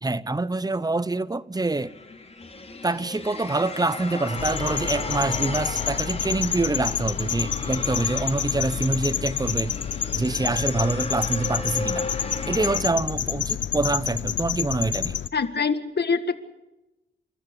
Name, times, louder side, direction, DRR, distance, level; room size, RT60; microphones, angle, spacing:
voice 1, 0.0-2.0 2.8-9.8 10.1-12.1 12.5-15.2, right 2 dB, 20° right, 0.8 m, -26 dB
sound 1, 1.5-12.8, left 3 dB, 35° left, 5.6 m, -35 dB
sound 2, 4.4-15.3, left 9 dB, 80° left, 0.7 m, -28 dB
voice 2, 15.3-16.4, left 5 dB, 60° left, 1.8 m, -24 dB
29.5 x 13.5 x 8.5 m
cardioid pair, 70°, 19 cm